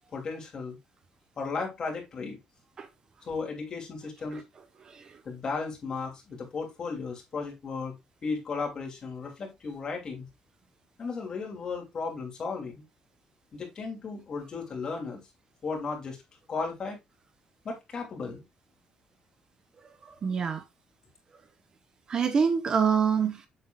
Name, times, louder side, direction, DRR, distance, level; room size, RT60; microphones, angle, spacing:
voice 1, 0.1-0.8 1.4-2.4 3.2-4.4 5.2-8.0 8.2-10.3 11.0-12.8 13.5-15.2 15.6-16.2 16.5-17.0 17.6-18.4, left 4 dB, 35° left, 2.9 m, -35 dB
voice 2, 4.8-5.2 20.0-20.6 22.1-23.5, right 6 dB, 35° right, 0.9 m, -26 dB
8.3 x 6.9 x 2.4 m
cardioid pair, 165°, 2 cm